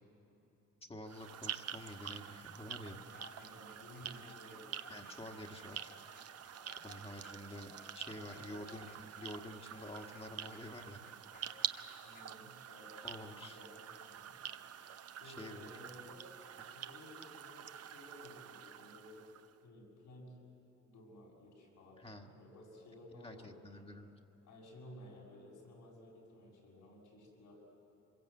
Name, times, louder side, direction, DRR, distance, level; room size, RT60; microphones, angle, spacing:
voice 1, 0.8-3.0 4.9-5.8 6.8-7.7 7.9-11.0 13.0-13.6 15.3-15.7 22.0-22.3 23.1-24.1, left 1 dB, 20° left, 2 dB, 1.7 m, -48 dB
sound 1, 1.0-19.5, right 9 dB, 55° right, 0.9 m, -47 dB
sound 2, 2.8-12.3, left 4 dB, 40° left, 2.2 m, -61 dB
voice 2, 3.3-4.8 8.2-8.5 11.9-12.9 13.3-14.4 15.1-16.3 16.6-19.2 19.6-20.4 20.8-22.0 22.3-23.7 24.4-27.6, left 1 dB, 85° left, -2 dB, 7.3 m, -55 dB
25.0 x 22.5 x 8.4 m, 3.0 s
cardioid pair, 90°, 30 cm